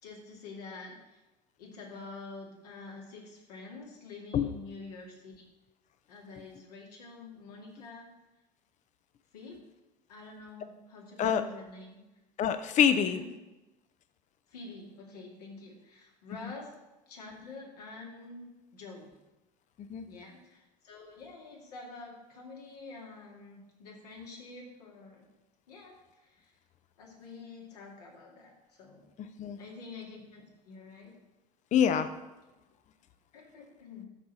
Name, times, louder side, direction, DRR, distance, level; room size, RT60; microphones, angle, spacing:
voice 1, 0.0-1.2 1.6-5.4 6.1-8.1 9.3-9.7 10.1-12.0 12.9-13.3 14.5-16.7 17.1-18.5 18.7-19.1 20.1-25.3 25.7-26.5 27.0-29.0 29.6-31.1 33.3-34.1, left 3 dB, 75° left, -1 dB, 2.2 m, -47 dB
voice 2, 12.4-13.2 19.9-20.1 29.2-29.6 31.7-32.1, left 8 dB, 35° left, 11 dB, 0.7 m, -26 dB
12.5 x 4.6 x 4.1 m, 1.0 s
figure-of-eight pair, 70°, 20 cm